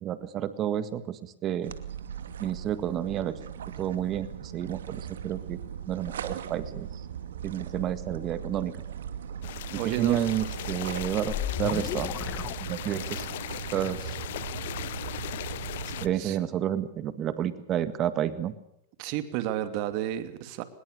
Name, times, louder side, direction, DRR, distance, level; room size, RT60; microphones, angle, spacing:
voice 1, 0.0-1.7 2.4-3.4 3.8-5.6 5.9-6.9 7.4-8.8 9.7-12.1 12.7-13.3 13.7-14.1 16.0-18.5, right 10 dB, 35° right, 13 dB, 1.8 m, -30 dB
sound 1, 1.6-16.1, right 8 dB, 90° right, 2.5 m, -39 dB
sound 2, 9.4-16.1, left 14 dB, 70° left, 1.0 m, -38 dB
voice 2, 9.7-10.3 16.2-16.4 19.0-20.6, right 12 dB, 50° right, 11 dB, 2.6 m, -31 dB
sound 3, 10.6-13.3, left 12 dB, 40° left, 1.5 m, -35 dB
24.0 x 21.0 x 6.7 m, 0.75 s
hypercardioid pair, 130°, 0 cm